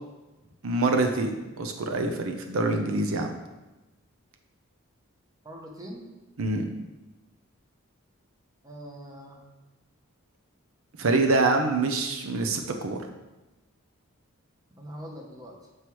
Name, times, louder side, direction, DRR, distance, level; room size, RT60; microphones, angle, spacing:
voice 1, 0.6-3.3 6.4-6.7 11.0-13.0, right 3 dB, 80° right, 4 dB, 0.6 m, -25 dB
voice 2, 5.4-6.1 8.6-9.4 14.8-15.6, equal, 15° right, 0 dB, 0.8 m, -42 dB
7.7 x 4.6 x 3.1 m, 1.1 s
head